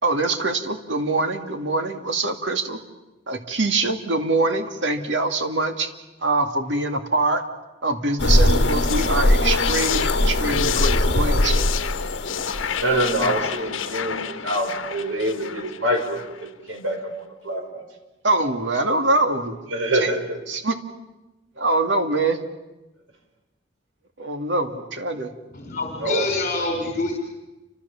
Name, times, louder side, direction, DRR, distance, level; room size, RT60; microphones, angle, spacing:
voice 1, 0.0-2.8 3.3-5.9 6.2-7.4 7.8-11.6 18.2-19.6 19.9-20.1 20.5-20.7 21.6-22.4 24.2-25.3, right 2 dB, 65° right, 6 dB, 2.5 m, -24 dB
sound 1, 8.2-13.3, left 1 dB, 65° left, 1.6 m, -21 dB
sound 2, 8.4-16.5, left 7 dB, 85° left, 1.2 m, -30 dB
voice 2, 12.8-17.9 19.7-20.4 26.0-26.3, right 1 dB, 85° right, 4 dB, 6.0 m, -25 dB
voice 3, 25.5-27.1, left 3 dB, 45° left, 2 dB, 4.6 m, -26 dB
29.5 x 26.0 x 7.3 m, 1.0 s
head